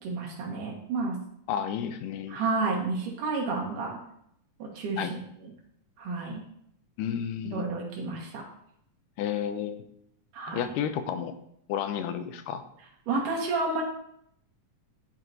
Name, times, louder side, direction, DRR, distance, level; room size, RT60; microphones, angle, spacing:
voice 1, 0.0-1.2 2.3-4.0 4.6-5.2 6.0-6.4 7.5-8.4 10.3-10.7 13.1-13.8, right 3 dB, 80° right, -2 dB, 3.0 m, -30 dB
voice 2, 1.5-2.4 5.0-5.1 7.0-7.6 9.2-9.8 10.5-11.3 11.7-12.6, left 9 dB, 90° left, 9 dB, 2.2 m, -31 dB
12.5 x 4.4 x 2.7 m, 0.73 s
omnidirectional pair, 3.7 m